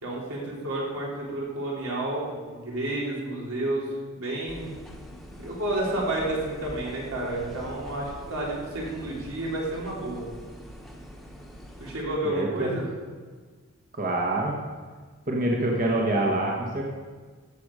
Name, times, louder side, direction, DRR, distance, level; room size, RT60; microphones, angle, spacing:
voice 1, 0.0-3.9 4.1-4.8 5.4-10.3 11.8-12.9, right 1 dB, 85° right, -5 dB, 3.9 m, -30 dB
sound 1, 4.5-12.0, equal, ahead, 1.2 m, -44 dB
voice 2, 12.2-12.8 13.9-14.6 15.3-16.8, right 1 dB, 40° right, -1 dB, 1.2 m, -26 dB
14.0 x 7.9 x 4.9 m, 1.5 s
head